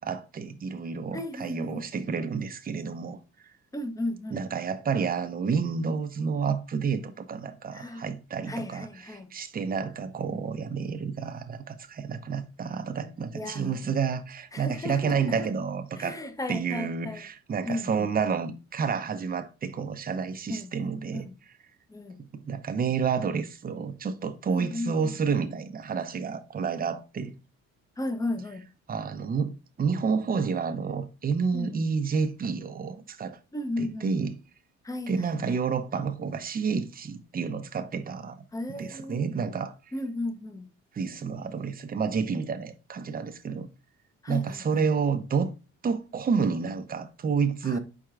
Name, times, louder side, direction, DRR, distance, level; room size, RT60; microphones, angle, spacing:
voice 1, 0.1-3.2 4.3-8.9 9.3-16.2 16.5-21.3 22.3-27.3 28.9-33.4 33.8-34.3 35.1-38.4 38.7-39.7 40.9-43.7 44.3-45.5 45.8-47.8, right 5 dB, 30° right, 0.6 m, -29 dB
voice 2, 1.1-1.9 3.7-4.4 7.7-8.1 8.5-9.3 13.3-13.9 14.5-15.5 16.0-17.2 17.7-18.1 20.5-21.4 21.9-22.2 24.5-25.1 28.0-28.7 31.5-31.8 33.5-34.1 34.8-35.3 38.5-39.2 39.9-40.7 44.2-44.9 47.6-47.8, left 2 dB, 10° left, 0.6 m, -35 dB
4.6 x 4.5 x 2.4 m
cardioid pair, 90°, 30 cm